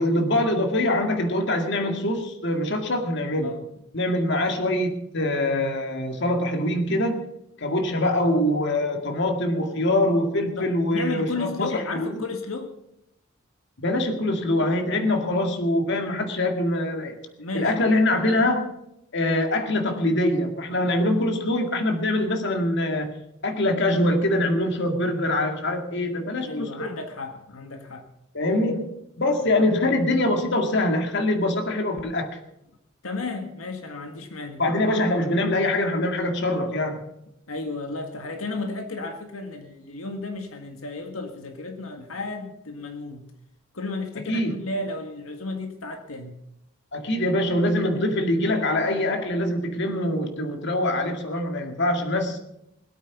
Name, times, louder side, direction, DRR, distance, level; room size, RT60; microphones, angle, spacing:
voice 1, 0.0-3.5 3.9-7.3 7.6-12.2 13.8-17.2 17.5-18.7 19.1-23.2 23.4-26.9 28.3-32.4 34.6-37.1 44.3-44.5 46.9-52.4, left 1 dB, 55° left, 4 dB, 2.1 m, -24 dB
voice 2, 10.6-12.7 17.4-17.7 26.4-28.1 29.4-29.6 33.0-34.6 37.5-43.2 43.7-46.4, left 3 dB, 85° left, 5 dB, 1.7 m, -33 dB
21.5 x 8.9 x 5.9 m, 0.82 s
head